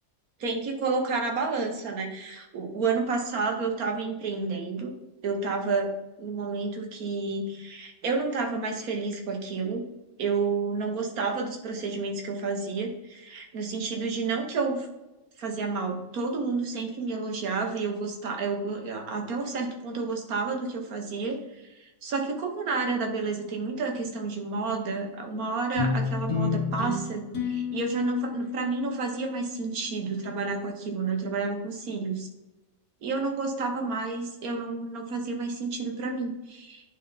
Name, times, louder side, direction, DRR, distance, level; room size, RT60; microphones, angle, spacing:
voice 1, 0.4-4.9 5.2-5.9 6.2-9.8 10.2-14.9 15.4-21.4 21.6-32.3 33.0-36.8, right 4 dB, 80° right, 2 dB, 1.6 m, -30 dB
sound 1, 25.8-30.4, left 5 dB, 65° left, 2.3 m, -31 dB
10.0 x 3.4 x 4.0 m, 1.0 s
omnidirectional pair, 1.5 m